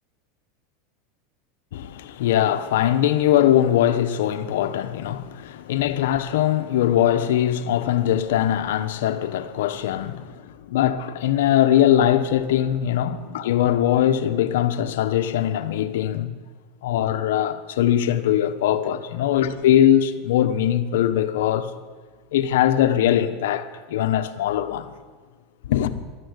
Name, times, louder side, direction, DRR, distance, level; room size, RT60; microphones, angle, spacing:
voice 1, 1.7-16.3 16.8-21.7 22.3-24.9 25.6-25.9, left 11 dB, 80° left, 1.1 m, -21 dB
14.0 x 12.5 x 8.1 m
supercardioid pair, 135°, 0 cm